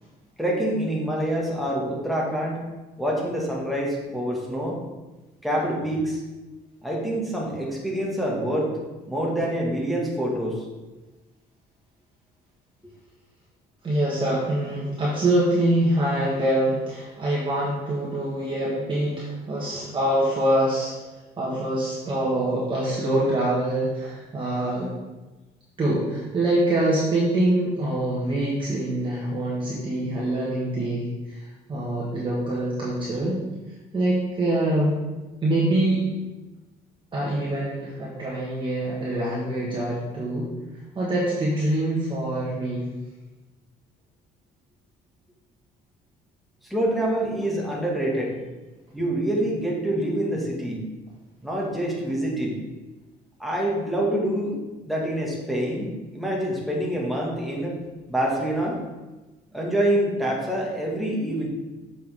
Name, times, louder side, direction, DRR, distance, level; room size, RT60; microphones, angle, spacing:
voice 1, 0.4-2.6 3.0-4.8 5.4-6.2 6.8-8.7 9.1-10.7 46.7-48.4 48.9-50.9 51.4-52.6 53.4-57.8 58.1-58.8 59.5-61.5, right 1 dB, ahead, -3 dB, 1.9 m, -26 dB
voice 2, 13.8-21.1 21.4-24.9 25.8-33.4 33.9-35.0 35.4-36.0 37.1-40.5 40.9-42.9, right 1 dB, 30° right, -6 dB, 1.6 m, -25 dB
7.5 x 5.8 x 3.7 m, 1.1 s
cardioid pair, 110°, 17 cm